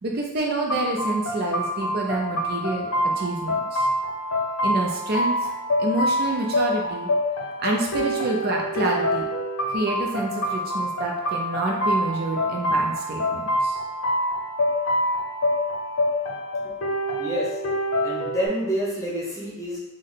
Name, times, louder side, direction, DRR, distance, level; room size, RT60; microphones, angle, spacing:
voice 1, 0.0-3.9 4.6-5.5 5.8-7.1 7.6-9.3 9.7-13.8, right 2 dB, 45° right, 0 dB, 0.4 m, -28 dB
sound 1, 0.7-18.5, left 1 dB, 75° left, 0.7 m, -26 dB
voice 2, 18.0-19.8, right 1 dB, 15° left, -5 dB, 0.8 m, -28 dB
3.5 x 2.1 x 3.8 m, 1.0 s
head